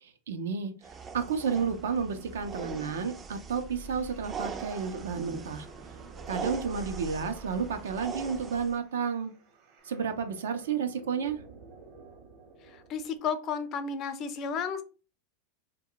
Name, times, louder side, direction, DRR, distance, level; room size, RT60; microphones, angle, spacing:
voice 1, 0.3-0.8 1.1-5.7 6.3-9.3 9.8-11.4, right 6 dB, 85° right, 8 dB, 0.5 m, -31 dB
sound 1, 0.8-8.8, right 5 dB, 25° right, 0.3 m, -41 dB
sound 2, 1.5-13.2, right 4 dB, 55° right, 0.8 m, -53 dB
voice 2, 12.7-14.8, left 6 dB, 45° left, 10 dB, 0.5 m, -33 dB
2.2 x 2.2 x 3.7 m, 0.35 s
hypercardioid pair, 110°, 0 cm